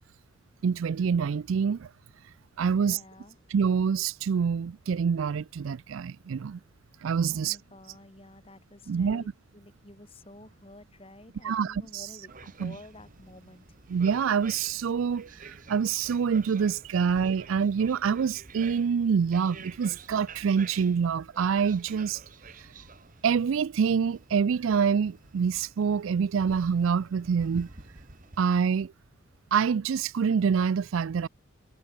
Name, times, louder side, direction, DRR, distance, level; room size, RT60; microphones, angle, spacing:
voice 1, 0.6-1.9 2.6-3.0 3.5-6.6 7.0-7.6 8.9-9.2 11.4-12.0 12.6-12.7 13.9-22.2 23.2-27.7 28.4-28.9 29.5-31.3, right 6 dB, 75° right, 0.4 m, -26 dB
voice 2, 2.7-3.4 7.3-13.8, left 1 dB, 25° left, 2.4 m, -51 dB
sound 1, 12.3-28.5, right 4 dB, 40° right, 1.7 m, -49 dB
head